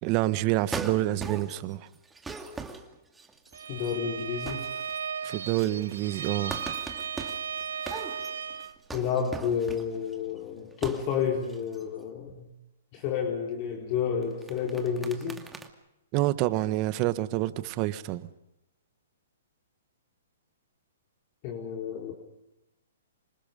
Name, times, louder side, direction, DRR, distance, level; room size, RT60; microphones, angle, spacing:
voice 1, 0.0-1.9 5.2-6.5 16.1-18.3, right 16 dB, 35° right, 1.5 m, -27 dB
sound 1, 0.7-1.7 2.1-3.9 4.3-5.0 5.3-10.1 10.7-11.2 11.4-11.8 14.2-15.7, right 4 dB, 10° right, 2.4 m, -40 dB
Bowed string instrument, 3.5-8.8, right 7 dB, 70° right, 1.2 m, -36 dB
voice 2, 3.7-4.7 8.9-12.5 12.9-15.4 21.4-22.1, left 7 dB, 40° left, 4.2 m, -30 dB
27.5 x 25.5 x 5.4 m
hypercardioid pair, 130°, 0 cm